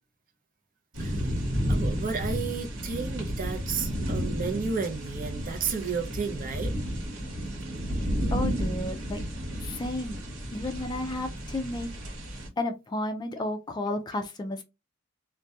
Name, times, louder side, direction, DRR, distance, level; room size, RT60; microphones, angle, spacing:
sound 1, 0.9-12.5, equal, 80° right, 1.0 m, -32 dB
voice 1, 1.7-6.7, right 5 dB, 45° right, 0.5 m, -32 dB
voice 2, 8.3-9.3 9.6-10.2 10.5-11.9 12.6-14.6, left 2 dB, 20° left, 0.3 m, -32 dB
2.7 x 2.2 x 2.2 m
head